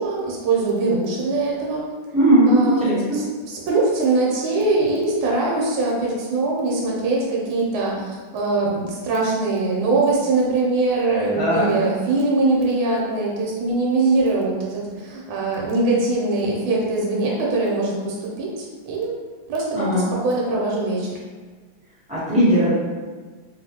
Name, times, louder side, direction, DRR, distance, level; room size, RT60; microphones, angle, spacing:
voice 1, 0.0-1.8 2.5-2.8 3.1-19.1 19.5-21.1, right 3 dB, 75° right, -3 dB, 1.5 m, -22 dB
voice 2, 2.1-3.2 11.3-11.7 19.7-20.1 22.1-22.7, right 1 dB, 5° right, -12 dB, 0.6 m, -18 dB
3.3 x 2.7 x 2.8 m, 1.4 s
omnidirectional pair, 2.3 m